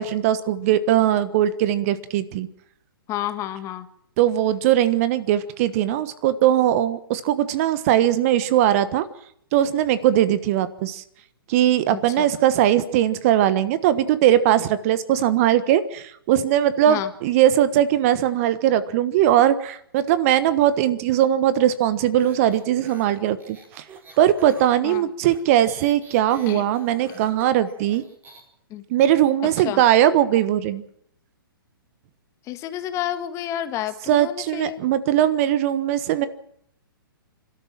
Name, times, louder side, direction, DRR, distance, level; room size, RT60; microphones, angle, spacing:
voice 1, 0.0-2.5 4.2-9.1 9.5-11.0 11.5-23.6 24.2-28.0 28.9-30.8 34.1-36.3, right 11 dB, 40° right, 14 dB, 1.3 m, -20 dB
voice 2, 3.1-3.9 11.9-12.3 16.9-17.1 24.8-25.1 26.5-26.6 27.1-27.3 28.7-28.8 29.6-29.8 32.5-34.8, left 12 dB, 25° left, 10 dB, 1.7 m, -30 dB
sound 1, 22.2-28.4, right 3 dB, 15° right, 4.3 m, -47 dB
28.0 x 13.0 x 7.5 m, 0.69 s
figure-of-eight pair, 120°, 12 cm